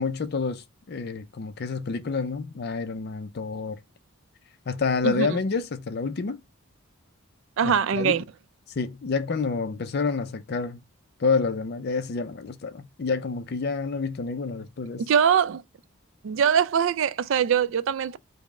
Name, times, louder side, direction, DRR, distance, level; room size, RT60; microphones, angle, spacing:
voice 1, 0.0-3.8 4.7-6.4 7.6-8.2 8.8-10.8 11.2-15.0, left 4 dB, 50° left, 0.4 m, -28 dB
voice 2, 5.0-5.4 7.6-8.2 15.1-15.6 16.2-18.2, right 7 dB, 60° right, 0.3 m, -22 dB
5.2 x 2.1 x 4.7 m
head